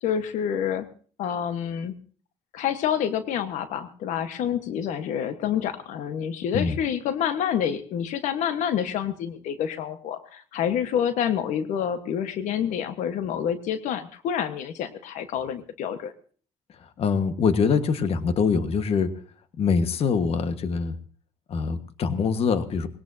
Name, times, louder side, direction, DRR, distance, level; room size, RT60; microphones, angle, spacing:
voice 1, 0.0-0.9 1.2-1.9 2.5-16.1, left 9 dB, 80° left, 9 dB, 1.3 m, -28 dB
voice 2, 16.8-19.2 19.6-21.0 21.5-22.9, left 5 dB, 55° left, 10 dB, 1.5 m, -24 dB
21.0 x 17.5 x 2.8 m, 0.42 s
cardioid pair, 115°, 12 cm